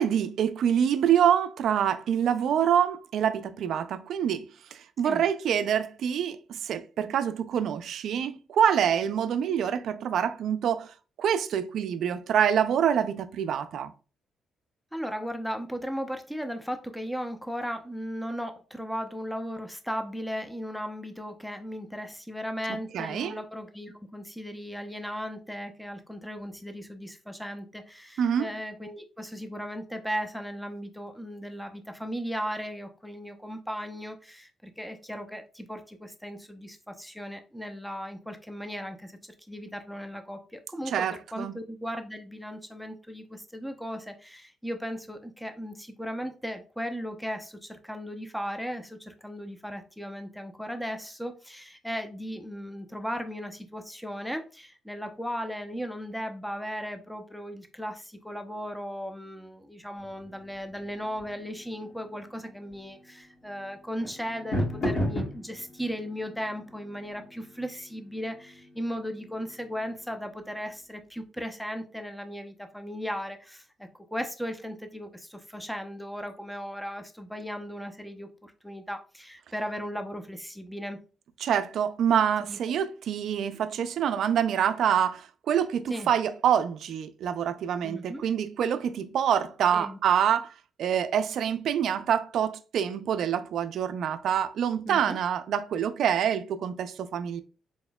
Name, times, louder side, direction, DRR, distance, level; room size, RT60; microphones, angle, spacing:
voice 1, 0.0-10.9 11.2-13.9 22.7-23.4 28.2-28.5 40.9-41.6 81.4-90.5 90.8-97.4, right 8 dB, 70° right, 0.4 m, -26 dB
voice 2, 14.9-39.2 39.5-73.6 74.1-81.0 82.5-82.6 85.9-86.1 87.8-88.2 89.7-90.0 94.9-95.2, equal, ahead, 0.6 m, -36 dB
sound 1, 60.0-70.8, equal, 65° left, 1.9 m, -37 dB
4.2 x 3.5 x 2.3 m
cardioid pair, 90°, 0 cm